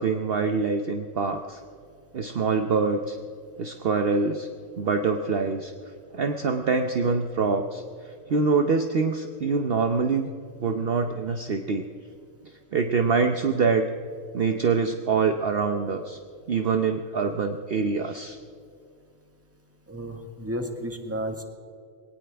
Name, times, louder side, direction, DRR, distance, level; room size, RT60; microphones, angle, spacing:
voice 1, 0.0-1.6 2.1-3.2 3.6-4.5 4.8-5.7 6.1-7.8 8.3-10.3 10.6-11.9 12.7-13.9 14.3-16.2 16.5-18.4, right 4 dB, 55° right, 6 dB, 0.9 m, -25 dB
voice 2, 19.9-21.4, equal, 10° right, 4 dB, 1.5 m, -32 dB
21.5 x 18.5 x 3.4 m, 2.4 s
omnidirectional pair, 1.3 m